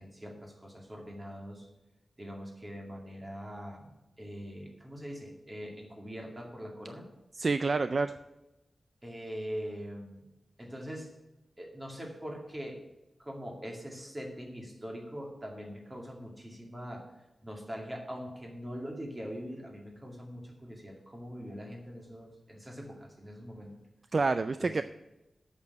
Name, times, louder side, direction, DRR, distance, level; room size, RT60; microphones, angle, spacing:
voice 1, 0.0-1.7 2.2-7.1 9.0-10.3 10.6-11.1 11.6-12.8 13.2-17.1 17.4-23.8 24.6-24.8, equal, 20° right, 0 dB, 2.3 m, -42 dB
voice 2, 7.4-8.1 24.1-24.8, right 3 dB, 45° right, 11 dB, 0.4 m, -28 dB
8.2 x 6.7 x 8.4 m, 0.98 s
wide cardioid pair, 135°, 0 cm